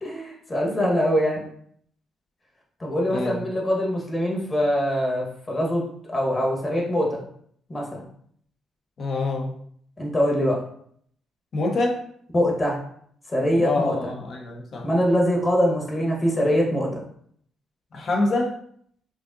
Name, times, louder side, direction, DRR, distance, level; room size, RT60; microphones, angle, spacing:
voice 1, 0.0-1.4 2.8-7.2 7.7-7.9 10.0-10.7 12.3-12.8 13.3-14.1 14.8-16.9, equal, 30° left, -1 dB, 1.2 m, -23 dB
voice 2, 3.1-3.4 9.0-9.5 11.5-12.0 13.6-14.9 17.9-18.5, left 2 dB, 55° left, 1 dB, 0.8 m, -25 dB
4.9 x 2.6 x 2.6 m, 0.64 s
cardioid pair, 90°, 0 cm